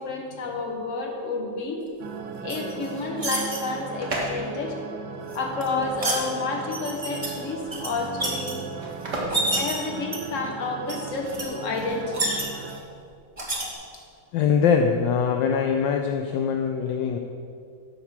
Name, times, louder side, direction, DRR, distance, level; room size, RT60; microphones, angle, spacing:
voice 1, 0.0-1.9 2.4-4.8 5.3-8.6 9.4-12.4, left 3 dB, 45° left, 1 dB, 1.4 m, -30 dB
sound 1, 2.0-12.8, right 5 dB, 75° right, 1.4 m, -37 dB
sound 2, 2.5-3.6 5.3-6.2 6.7-7.3 7.6-8.5 9.1-9.7 10.1-10.5 10.9-11.0 11.2-11.4 11.8-12.8 13.4-13.6, right 2 dB, 20° right, 1.2 m, -28 dB
sound 3, 3.6-10.5, right 1 dB, 40° right, 1.9 m, -36 dB
voice 2, 14.3-17.2, left 6 dB, 75° left, 4 dB, 1.2 m, -22 dB
11.0 x 4.6 x 7.3 m, 2.4 s
omnidirectional pair, 2.2 m